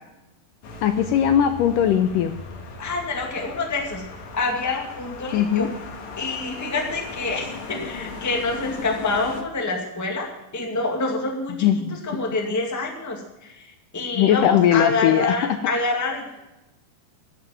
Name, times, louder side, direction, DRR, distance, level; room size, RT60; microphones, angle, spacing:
sound 1, 0.6-9.4, left 4 dB, 55° left, 2.6 m, -38 dB
voice 1, 0.8-2.3 5.3-5.7 11.6-12.2 14.1-15.6, left 10 dB, 80° left, 8 dB, 2.0 m, -20 dB
voice 2, 2.8-4.0 4.3-5.7 6.2-10.3 10.5-11.7 12.0-13.7 13.9-16.4, left 3 dB, 10° left, 1 dB, 1.1 m, -27 dB
14.0 x 7.3 x 9.1 m, 0.97 s
omnidirectional pair, 4.4 m